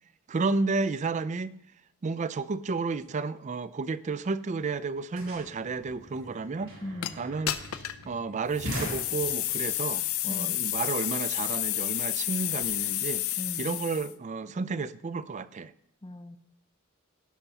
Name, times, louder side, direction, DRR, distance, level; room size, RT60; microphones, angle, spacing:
voice 1, 0.3-1.6 2.0-6.8 7.2-7.6 8.0-13.2 13.6-15.7, right 4 dB, 35° right, 0.4 m, -31 dB
sound 1, 4.2-4.3 4.5-9.7, equal, 80° right, 4.1 m, -41 dB
voice 2, 6.8-7.2 10.3-10.6 13.4-13.8 16.0-16.4, left 1 dB, 20° left, 0.6 m, -39 dB
sound 2, 7.0-7.1 7.5-8.0 8.5-14.1, left 14 dB, 85° left, 0.6 m, -30 dB
17.5 x 5.8 x 4.1 m
head